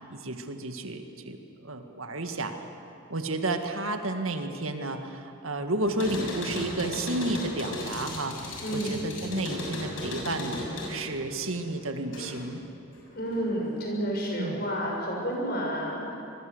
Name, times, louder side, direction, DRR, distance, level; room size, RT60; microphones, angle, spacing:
voice 1, 0.0-2.6 3.1-12.6 14.4-14.6, right 2 dB, 85° right, 6 dB, 1.9 m, -32 dB
sound 1, 5.9-12.6 12.9-13.8, left 1 dB, 70° left, 6.9 m, -36 dB
voice 2, 8.6-9.0 13.1-16.1, equal, 45° left, -1 dB, 6.7 m, -30 dB
25.5 x 21.5 x 8.0 m, 2.6 s
head